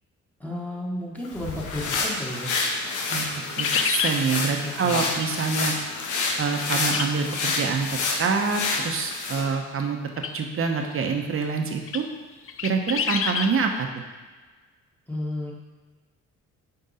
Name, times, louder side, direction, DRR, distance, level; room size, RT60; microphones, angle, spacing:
voice 1, 0.4-2.5 4.6-5.1 15.1-15.5, left 1 dB, 5° left, -3 dB, 1.5 m, -33 dB
sound 1, 1.2-9.5, left 3 dB, 80° left, 1.1 m, -28 dB
sound 2, 3.4-4.2 6.9-7.1 7.4-7.5 10.2-10.3 11.0-11.1 11.9-12.0 12.5-13.5, left 7 dB, 45° left, 0.5 m, -27 dB
voice 2, 3.6-5.7 6.4-7.9 8.2-10.0 10.3-12.0 12.6-13.9, right 5 dB, 45° right, 3 dB, 1.0 m, -26 dB
7.8 x 4.5 x 4.2 m, 1.3 s
cardioid pair, 90°, 30 cm